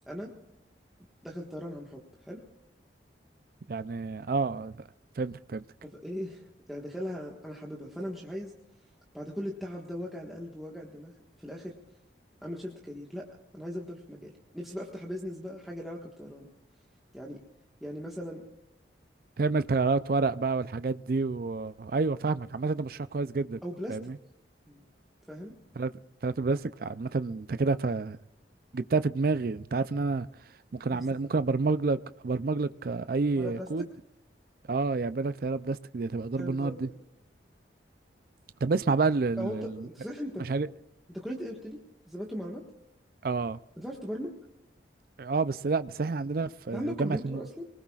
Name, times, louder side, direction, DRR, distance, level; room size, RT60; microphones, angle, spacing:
voice 1, 1.2-2.4 5.8-8.5 9.1-11.1 11.4-11.8 12.4-16.5 17.1-17.4 17.8-18.4 23.6-24.0 24.7-24.8 25.3-25.5 30.9-31.0 33.3-33.7 36.4-37.0 39.4-40.7 41.1-42.6 43.8-44.3 46.7-47.7, equal, ahead, 1.5 m, -39 dB
voice 2, 3.7-4.8 5.2-5.6 19.4-23.6 23.9-24.2 25.8-25.9 26.2-28.2 28.7-30.3 30.7-32.0 32.2-33.8 34.7-36.9 38.6-39.8 40.4-40.7 43.2-43.6 45.2-47.4, right 3 dB, 50° right, 0.4 m, -29 dB
25.0 x 19.5 x 2.4 m
head